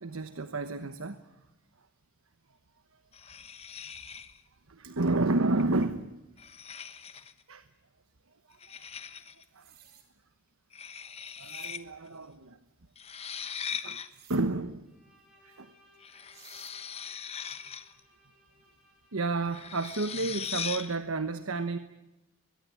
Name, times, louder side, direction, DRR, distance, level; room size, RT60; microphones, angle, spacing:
voice 1, 0.0-1.2 4.7-6.2 7.1-7.2 7.5-7.6 8.5-8.8 9.5-9.7 11.4-12.6 13.8-14.0 14.3-14.9 15.4-15.7 19.1-21.8, right 3 dB, 85° right, 10 dB, 1.1 m, -31 dB
sound 1, 3.1-4.4 5.6-5.8 6.4-7.4 8.6-9.4 10.7-11.8 12.1-12.2 13.0-14.1 16.0-18.0 19.5-21.0, left 7 dB, 30° left, 1.1 m, -40 dB
sound 2, 9.4-10.1 11.3-11.7 14.1-14.4 15.9-16.0 16.3-16.8, right 10 dB, 45° right, 4.2 m, -55 dB
Bowed string instrument, 14.8-20.7, equal, ahead, 7.4 m, -65 dB
22.5 x 21.5 x 9.7 m, 0.97 s
head